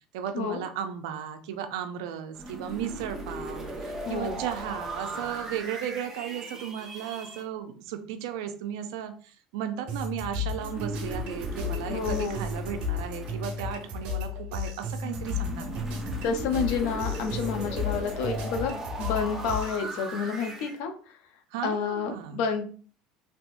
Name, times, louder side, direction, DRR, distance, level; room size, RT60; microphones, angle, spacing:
voice 1, 0.1-15.9 21.5-22.4, right 9 dB, 85° right, 7 dB, 0.5 m, -35 dB
sound 1, 2.3-7.4 10.5-14.3 15.0-20.8, right 2 dB, 20° right, 0.8 m, -38 dB
voice 2, 4.0-4.4 11.9-12.4 16.2-20.9 21.6-22.6, left 6 dB, 75° left, 6 dB, 0.7 m, -29 dB
sound 2, 9.9-19.8, left 4 dB, 60° right, 1.2 m, -34 dB
3.4 x 2.9 x 2.5 m, 0.41 s
supercardioid pair, 110°, 3 cm